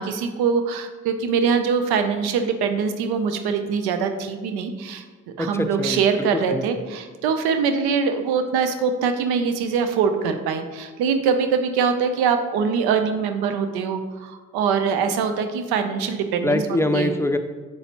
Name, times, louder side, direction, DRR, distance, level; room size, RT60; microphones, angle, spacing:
voice 1, 0.0-5.0 5.4-16.6 16.9-17.1, right 6 dB, 75° right, 8 dB, 0.6 m, -23 dB
voice 2, 5.4-6.6 16.4-17.4, left 1 dB, 5° left, 7 dB, 0.6 m, -24 dB
7.0 x 6.6 x 2.9 m, 1.4 s
hypercardioid pair, 40°, 38 cm